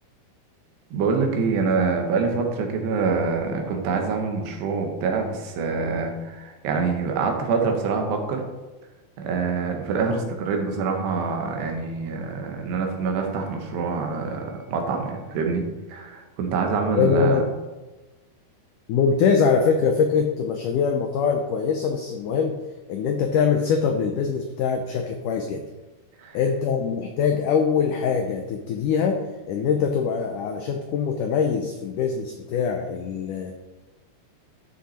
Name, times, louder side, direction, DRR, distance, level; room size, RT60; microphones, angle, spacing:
voice 1, 0.9-8.4 9.2-15.6 15.9-17.4 26.2-26.4, right 4 dB, 85° right, 3 dB, 3.5 m, -25 dB
voice 2, 16.8-17.4 18.9-22.6 22.9-25.6 26.3-33.6, left 6 dB, 85° left, 4 dB, 1.8 m, -23 dB
13.0 x 6.4 x 4.3 m, 1.1 s
omnidirectional pair, 4.7 m